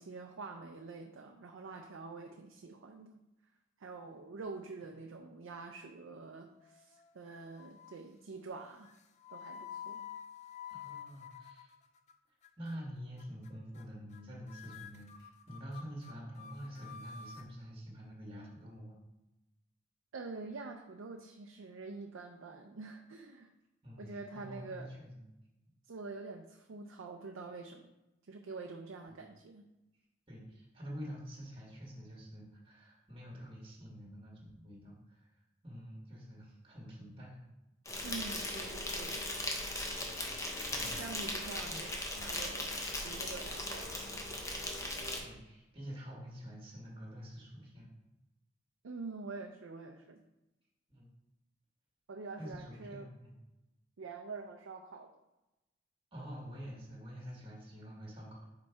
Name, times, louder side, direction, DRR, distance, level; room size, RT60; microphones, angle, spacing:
voice 1, 0.0-3.2 3.8-8.9 9.3-10.1 20.1-23.5 24.0-24.9 25.8-27.9 28.3-29.7 38.0-39.2 40.8-44.3 48.8-50.2 52.1-53.1 54.0-55.1, right 3 dB, 80° right, 3 dB, 0.5 m, -46 dB
sound 1, 6.6-7.2 7.6-8.1 8.8-12.1 12.4-12.8 13.2-13.5 13.8-13.9 14.1-14.2 14.5-17.5, left 8 dB, 35° left, 0.3 m, -49 dB
voice 2, 10.7-11.7 12.6-19.0 23.8-25.2 29.1-29.2 30.3-37.4 39.5-40.0 40.7-41.0 41.6-41.9 45.2-47.9 50.9-51.1 52.4-53.3 56.1-58.5, equal, 25° right, -3 dB, 1.6 m, -47 dB
Insect, 37.9-45.2, left 1 dB, 15° left, 0.7 m, -38 dB
5.3 x 4.0 x 4.6 m, 0.98 s
head